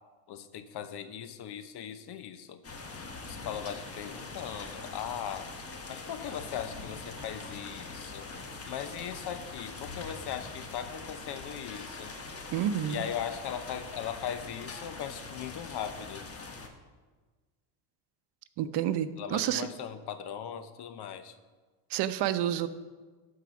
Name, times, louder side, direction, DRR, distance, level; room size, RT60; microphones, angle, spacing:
voice 1, 0.3-2.6 3.2-5.5 5.9-8.3 8.6-12.1 12.9-16.2 19.2-21.4, left 9 dB, 55° left, 10 dB, 0.9 m, -39 dB
sound 1, 2.6-16.7, left 3 dB, 30° left, 1.4 m, -43 dB
voice 2, 12.5-13.0 18.6-19.7 21.9-22.7, right 11 dB, 60° right, 12 dB, 0.7 m, -29 dB
12.0 x 4.8 x 5.9 m, 1.4 s
supercardioid pair, 90°, 46 cm